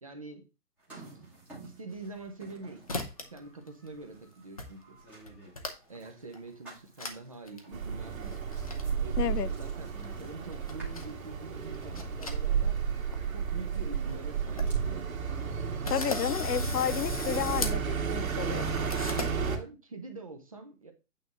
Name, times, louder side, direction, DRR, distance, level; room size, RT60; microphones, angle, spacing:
voice 1, 0.0-0.5 0.9-1.3 1.6-3.0 3.3-5.0 5.9-8.4 9.0-12.8 13.3-15.1 17.2-17.6 18.4-18.7 19.5-20.9, right 3 dB, 25° right, 0.7 m, -45 dB
sound 1, 0.8-18.0, right 2 dB, 5° right, 1.1 m, -54 dB
sound 2, 1.9-2.5 2.9-3.4 3.7-4.2 4.6-4.7 5.0-6.0 6.3-6.4 7.0-7.2 7.5-7.6 8.2-8.8 10.0-11.1 11.7-12.8 13.1-13.2 13.7-13.8 14.1-14.2 14.4-14.7 15.2-15.3 15.8-17.8 18.9-19.3, left 3 dB, 25° left, 0.6 m, -38 dB
sound 3, 7.7-19.6, right 6 dB, 60° right, 2.0 m, -32 dB
voice 2, 9.2-9.5 15.9-18.7, left 10 dB, 85° left, 0.7 m, -31 dB
8.7 x 3.5 x 6.6 m
hypercardioid pair, 170°, 46 cm